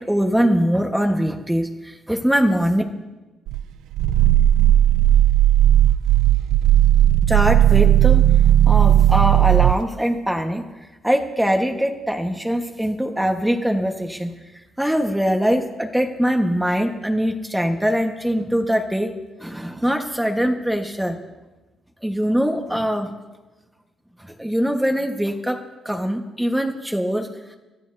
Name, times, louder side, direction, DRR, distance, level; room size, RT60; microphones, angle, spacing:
voice 1, 0.0-2.8 7.3-8.3 8.7-10.6 11.0-14.3 14.8-19.1 19.4-21.2 22.0-23.1 24.2-27.3, equal, 5° right, 3 dB, 1.3 m, -22 dB
Growling, 3.5-9.8, right 12 dB, 85° right, 0.4 m, -15 dB
25.0 x 13.5 x 2.7 m, 1.1 s
cardioid pair, 90°, 0 cm